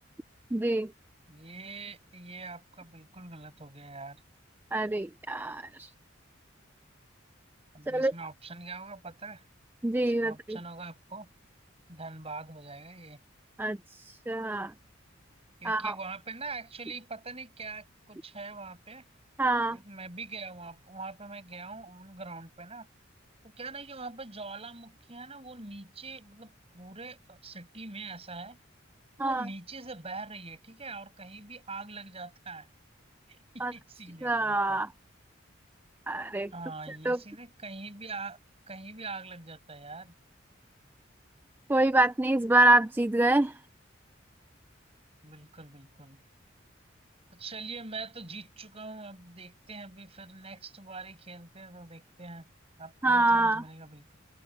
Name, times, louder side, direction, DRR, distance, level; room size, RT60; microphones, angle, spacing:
voice 1, 0.5-0.9 4.7-5.9 7.9-8.1 9.8-10.6 13.6-13.8 14.1-14.7 15.6-15.9 19.4-19.8 29.2-29.5 33.6-33.7 34.2-34.9 36.1-36.5 36.9-37.2 41.7-43.5 53.0-53.6, right 2 dB, 10° right, 0.4 m, -25 dB
voice 2, 1.3-4.2 7.7-9.4 10.0-11.3 11.9-13.2 15.6-19.0 19.7-22.9 23.4-28.6 29.2-32.7 33.3-34.8 36.5-38.4 38.7-40.1 45.2-46.2 47.3-52.5 52.8-54.2, right 3 dB, 30° right, 6.8 m, -43 dB
open air
head